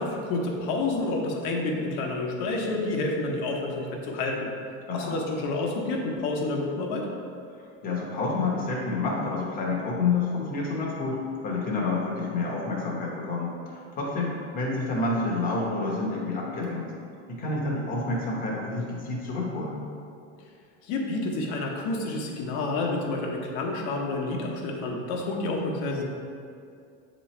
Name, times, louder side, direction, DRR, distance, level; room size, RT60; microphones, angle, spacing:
voice 1, 0.0-4.5 4.9-7.1 20.8-26.0, left 2 dB, 55° left, 0 dB, 1.0 m, -29 dB
voice 2, 4.9-5.2 7.5-16.9 17.3-19.8, left 3 dB, 25° left, -3 dB, 1.0 m, -29 dB
7.6 x 3.1 x 4.3 m, 2.4 s
cardioid pair, 175°, 33 cm